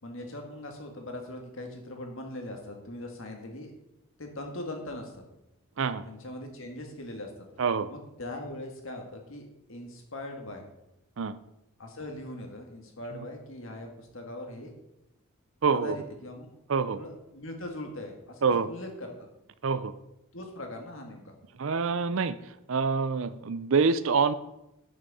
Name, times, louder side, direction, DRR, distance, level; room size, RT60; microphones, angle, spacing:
voice 1, 0.0-3.7 4.2-5.2 6.1-7.3 7.9-10.7 11.8-14.7 15.7-16.5 16.9-19.3 20.3-21.3, left 1 dB, 65° left, 3 dB, 1.8 m, -40 dB
voice 2, 7.6-7.9 11.2-11.3 15.6-16.0 16.7-17.0 18.4-18.7 19.6-19.9 21.6-22.4 22.7-24.3, right 5 dB, 65° right, 14 dB, 0.5 m, -26 dB
11.0 x 6.3 x 4.2 m, 0.87 s
head